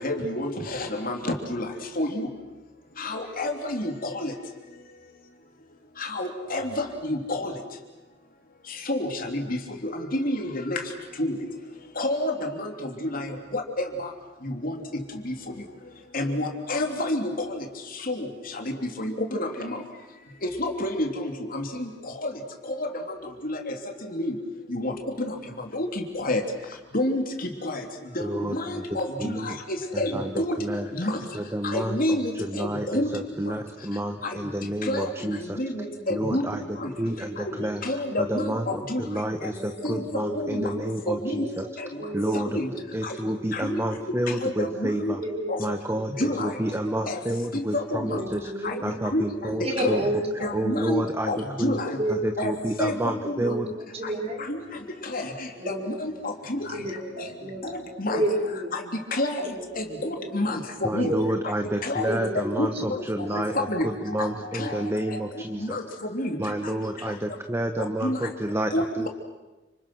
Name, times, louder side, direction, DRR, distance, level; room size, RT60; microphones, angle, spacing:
voice 1, 0.0-1.7 2.0-2.3 3.0-4.3 6.1-7.5 8.9-9.4 10.2-10.8 11.2-11.4 12.0-12.7 13.0-13.3 13.5-14.1 14.4-14.7 15.3-15.4 16.1-17.3 18.1-18.3 19.0-19.8 20.4-21.9 22.2-22.3 22.7-22.9 23.4-23.7 24.1-24.3 24.7-24.9 25.2-25.3 25.7-25.9 26.2-26.4 26.9-27.2 27.6-27.8 28.2-28.3 28.5-30.1 30.4-30.5 30.9-31.2 31.7-33.1 34.9-35.1 35.4-36.5 36.8-36.9 37.8-39.1 39.8-40.0 40.4-40.7 41.1-41.5 41.8-41.9 42.3-42.7 43.7-43.8 44.4-45.2 45.5-45.6 46.2-46.5 47.1-47.2 47.5-48.2 48.6-48.8 49.1-49.3 49.6-50.0 50.4-52.0 52.4-52.5 52.8-52.9 53.3-53.5 54.5-54.6 55.1-55.2 55.7-56.6 58.0-58.2 58.7-58.8 59.1-59.3 59.8-60.6 60.9-61.1 61.8-62.0 62.6-63.0 63.3-63.9 64.2-64.3 64.6-64.7 65.6-65.8 66.1-66.4 68.0-68.2 68.7-69.1, left 1 dB, 50° left, 3 dB, 3.4 m, -28 dB
voice 2, 28.2-28.8 29.2-29.6 29.9-30.9 31.3-35.6 36.1-36.6 37.0-37.8 38.2-41.7 42.1-42.6 42.9-45.2 45.6-50.0 50.5-51.3 51.6-51.8 52.1-53.7 60.8-65.8 66.4-69.1, right 1 dB, 15° right, 6 dB, 1.2 m, -30 dB
voice 3, 35.6-37.6 38.0-38.9 39.5-40.8 41.4-41.7 42.0-43.7 45.2-47.1 48.1-48.8 49.6-50.5 51.0-51.1 52.0-52.6 53.2-54.5 55.6-56.0 56.7-57.9 58.1-58.7 59.4-60.5 60.9-61.4 62.0-63.4, right 1 dB, 35° right, 1 dB, 4.7 m, -33 dB
30.0 x 28.0 x 6.3 m, 1.1 s
head